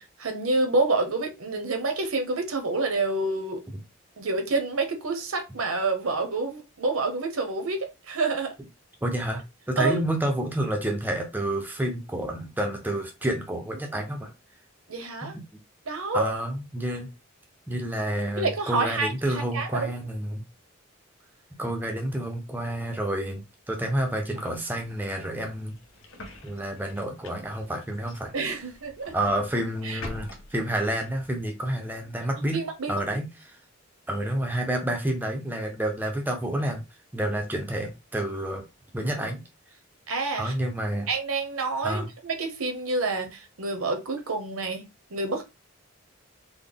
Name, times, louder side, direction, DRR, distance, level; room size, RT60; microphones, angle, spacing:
voice 1, 0.0-3.6 4.2-8.5 9.8-10.0 14.9-15.3 15.9-16.3 18.4-19.1 19.5-19.9 28.3-29.1 29.8-30.0 32.5-33.0 40.1-40.5 41.1-44.9 45.1-45.4, right 3 dB, 80° right, 0.8 m, -28 dB
voice 2, 9.0-9.4 9.7-14.3 15.2-15.4 16.1-17.1 17.7-20.4 21.6-23.4 23.7-25.7 26.4-28.3 29.1-32.6 32.9-33.6 34.1-36.8 37.1-38.6 38.9-39.4 40.4-41.1 41.8-42.1, right 1 dB, 10° right, 0.5 m, -29 dB
sound 1, 23.9-31.4, left 1 dB, 70° left, 0.9 m, -46 dB
3.9 x 2.1 x 3.5 m
head